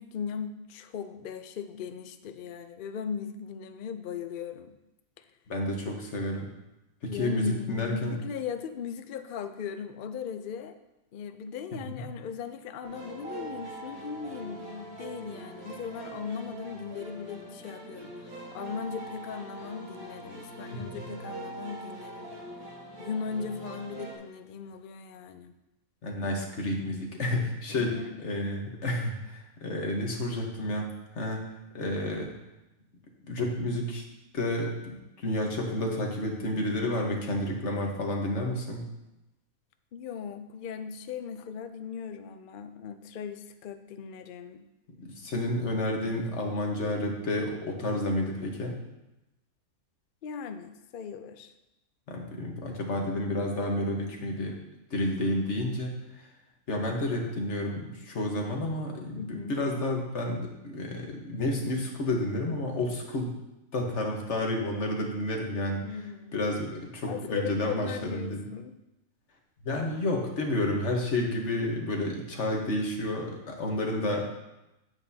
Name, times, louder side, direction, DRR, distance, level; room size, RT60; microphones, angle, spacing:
voice 1, 0.0-4.8 5.2-5.3 7.1-10.8 11.1-22.3 23.0-25.5 27.7-28.4 39.9-44.6 50.2-51.5 59.1-59.6 65.7-66.5 67.1-68.8, left 6 dB, 80° left, 8 dB, 0.4 m, -38 dB
voice 2, 5.5-6.4 7.0-8.2 11.9-12.1 20.7-20.8 26.0-27.9 28.2-30.9 31.1-31.4 31.7-32.3 33.3-34.0 34.3-38.8 45.0-48.7 52.1-54.6 54.9-55.9 56.7-63.3 63.7-65.8 66.3-68.4 69.6-74.2, left 1 dB, 55° left, 1 dB, 1.5 m, -30 dB
sound 1, 12.8-24.2, right 2 dB, 80° right, 2.3 m, -42 dB
9.1 x 8.1 x 2.8 m, 0.94 s
omnidirectional pair, 1.5 m